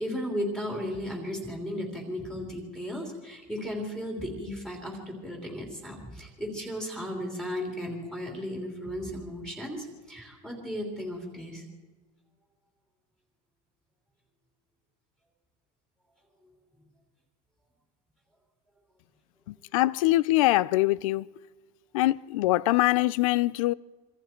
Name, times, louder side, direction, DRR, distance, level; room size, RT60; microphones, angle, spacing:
voice 1, 0.0-11.6, equal, 5° left, 3.2 m, -35 dB
voice 2, 19.7-21.2 21.9-23.7, left 18 dB, 75° left, 0.6 m, -23 dB
26.0 x 24.5 x 4.5 m
cardioid pair, 180°, 17 cm